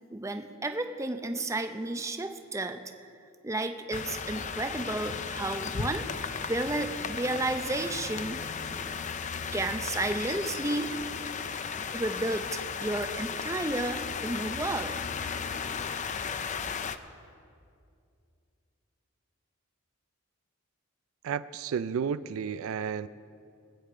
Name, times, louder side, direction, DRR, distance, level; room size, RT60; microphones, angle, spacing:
voice 1, 0.1-2.8 3.4-8.4 8.8-8.9 9.5-11.0 11.9-14.9, right 2 dB, 15° right, 7 dB, 0.6 m, -32 dB
sound 1, 3.9-17.0, left 6 dB, 35° left, 0.5 m, -35 dB
voice 2, 21.2-23.1, right 7 dB, 70° right, 14 dB, 0.3 m, -32 dB
21.0 x 8.6 x 4.9 m, 2.4 s
head